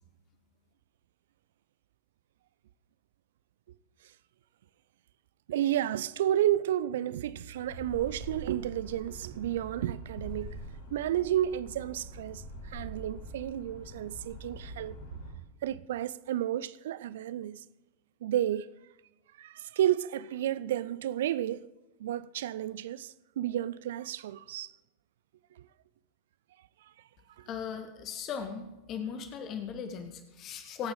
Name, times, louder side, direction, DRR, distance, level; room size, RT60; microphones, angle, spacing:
voice 1, 5.5-10.6 10.9-15.0 15.6-17.6 18.2-18.7 19.4-21.7 22.0-24.7 27.4-27.5, right 12 dB, 55° right, 0.5 m, -31 dB
sound 1, 7.7-15.3, right 1 dB, 60° left, 3.8 m, -44 dB
voice 2, 27.5-30.9, left 7 dB, 35° left, 1.5 m, -38 dB
25.0 x 8.7 x 3.8 m
figure-of-eight pair, 90°, 0 cm